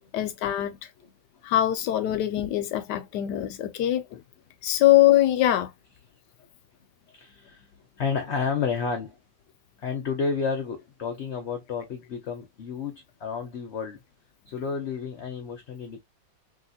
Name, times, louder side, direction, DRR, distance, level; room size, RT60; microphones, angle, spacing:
voice 1, 0.1-0.8 1.4-4.2 4.6-5.7, left 13 dB, 75° left, 1.1 m, -22 dB
voice 2, 0.7-1.2 6.4-6.5 6.8-7.7 8.0-9.2 9.8-14.0 14.5-16.0, left 5 dB, 55° left, 0.8 m, -31 dB
3.1 x 2.9 x 2.7 m
omnidirectional pair, 1.9 m